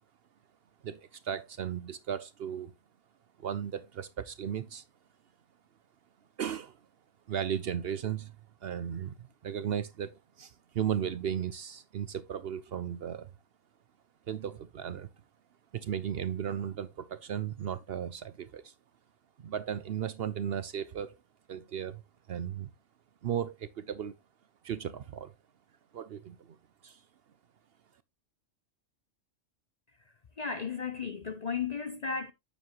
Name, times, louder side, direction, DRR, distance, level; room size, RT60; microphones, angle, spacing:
voice 1, 0.8-2.7 3.4-4.8 6.4-6.8 7.3-8.4 8.6-9.2 9.4-10.1 10.4-13.3 14.3-15.1 15.7-18.7 19.4-21.2 21.5-22.0 22.3-22.7 23.2-24.2 24.6-25.3 25.9-26.6 26.8-27.0, right 9 dB, 60° right, 0.7 m, -35 dB
voice 2, 30.4-32.3, left 5 dB, 40° left, 0.6 m, -34 dB
9.0 x 7.1 x 2.9 m
omnidirectional pair, 1.3 m